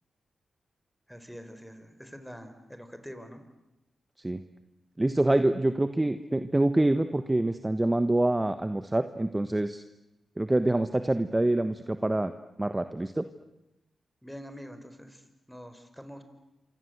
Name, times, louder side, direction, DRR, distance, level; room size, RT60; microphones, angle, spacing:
voice 1, 1.1-3.4 14.2-16.2, equal, ahead, 9 dB, 4.8 m, -45 dB
voice 2, 5.0-9.8 10.4-12.3 12.6-13.3, right 1 dB, 20° right, 10 dB, 1.3 m, -26 dB
27.5 x 25.0 x 8.1 m, 0.95 s
supercardioid pair, 50°, 0 cm